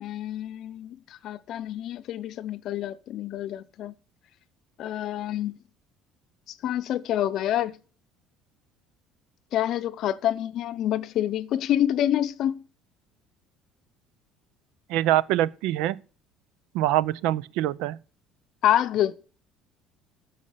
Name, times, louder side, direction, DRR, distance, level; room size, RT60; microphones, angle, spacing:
voice 1, 0.0-3.9 4.8-5.6 6.5-7.8 9.5-12.6 18.6-19.1, left 11 dB, 45° left, 0.7 m, -27 dB
voice 2, 14.9-16.0 16.7-18.0, right 14 dB, 75° right, 0.5 m, -24 dB
14.0 x 5.6 x 5.1 m
cardioid pair, 165°, 0 cm